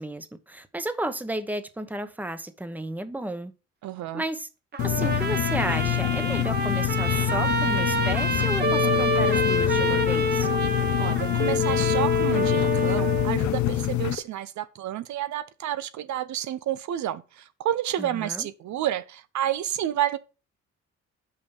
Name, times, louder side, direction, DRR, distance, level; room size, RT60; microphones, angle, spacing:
voice 1, 0.0-3.5 4.1-4.5 4.8-10.5 18.0-18.5, right 1 dB, 5° right, 1.0 m, -33 dB
voice 2, 3.8-4.2 11.0-20.2, right 11 dB, 70° right, 0.6 m, -30 dB
Trumpet, 4.7-13.3, right 4 dB, 35° right, 1.2 m, -29 dB
sound 1, 4.8-14.2, left 14 dB, 70° left, 0.7 m, -26 dB
sound 2, 8.6-14.2, left 6 dB, 35° left, 1.6 m, -28 dB
5.7 x 5.3 x 6.5 m
cardioid pair, 90°, 30 cm